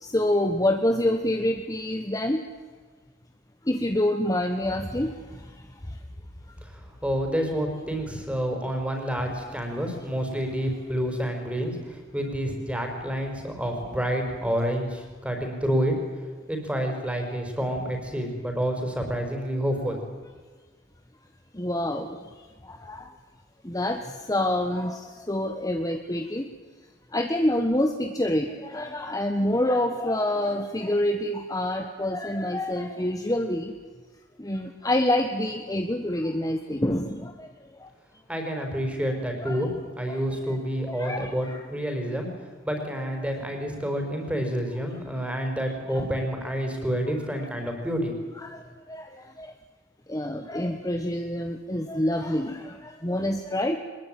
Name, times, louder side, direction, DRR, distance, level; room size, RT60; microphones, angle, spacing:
voice 1, 0.0-2.4 3.7-5.1 21.5-22.2 22.7-23.1 23.6-24.0 24.3-26.5 27.1-33.7 34.4-37.5 39.4-39.6 40.1-40.2 40.5-40.6 40.9-41.6 43.0-43.3 45.9-46.0 48.4-48.6 48.9-49.1 49.4-49.5 50.1-53.8, left 1 dB, 20° left, 5 dB, 1.3 m, -27 dB
voice 2, 6.6-15.9 16.5-20.0 38.3-39.7 40.0-42.3 42.6-48.2, equal, 5° right, 3 dB, 4.9 m, -28 dB
22.5 x 21.0 x 9.2 m, 1.4 s
head